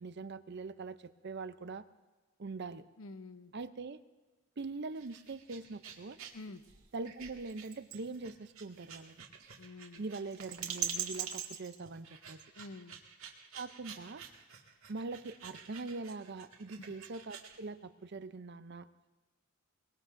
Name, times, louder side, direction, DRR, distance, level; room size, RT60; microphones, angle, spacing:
voice 1, 0.0-1.8 2.4-2.8 3.5-4.0 4.6-6.2 6.9-9.2 10.0-12.4 13.5-14.2 14.9-18.9, right 3 dB, 55° right, 12 dB, 0.6 m, -42 dB
voice 2, 3.0-3.5 6.3-6.6 9.6-10.0 12.6-13.0 16.8-16.9, left 2 dB, 75° left, 10 dB, 0.8 m, -48 dB
sound 1, 4.9-17.6, right 7 dB, 85° right, 2.0 m, -45 dB
23.0 x 21.5 x 2.6 m, 1.3 s
head